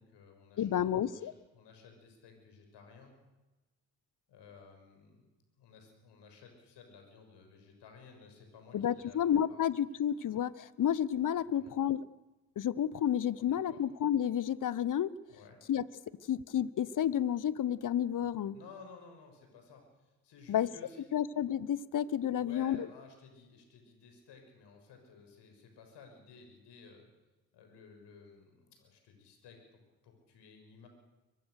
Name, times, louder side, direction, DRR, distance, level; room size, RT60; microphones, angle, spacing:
voice 1, 0.0-3.2 4.3-5.3 5.6-9.2 9.5-9.6 11.5-11.7 13.4-13.8 15.3-15.6 18.5-21.1 22.3-27.1 27.5-30.9, left 5 dB, 65° left, 5 dB, 6.5 m, -55 dB
voice 2, 0.6-1.3 8.7-12.0 12.6-15.1 15.7-15.8 16.3-18.6 20.5-20.7 21.1-22.9, left 10 dB, 45° left, 19 dB, 1.1 m, -31 dB
24.0 x 20.0 x 6.6 m, 1.1 s
hypercardioid pair, 45°, 45 cm